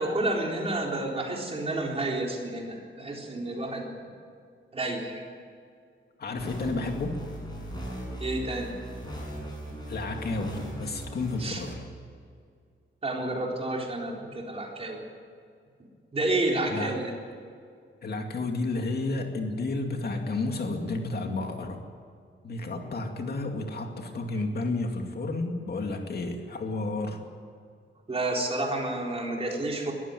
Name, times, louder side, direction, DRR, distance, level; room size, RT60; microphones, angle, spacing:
voice 1, 0.0-3.9 4.7-5.3 8.2-8.7 11.4-11.6 13.0-15.0 16.1-17.1 28.1-29.9, right 2 dB, 30° right, 0 dB, 3.9 m, -30 dB
voice 2, 6.2-7.2 9.9-11.8 16.7-16.9 18.0-21.8 22.4-27.2, left 2 dB, 55° left, 3 dB, 2.3 m, -31 dB
sound 1, 6.4-11.7, right 1 dB, 20° left, 7.2 m, -38 dB
21.5 x 15.0 x 9.4 m, 2.3 s
wide cardioid pair, 165°, 20 cm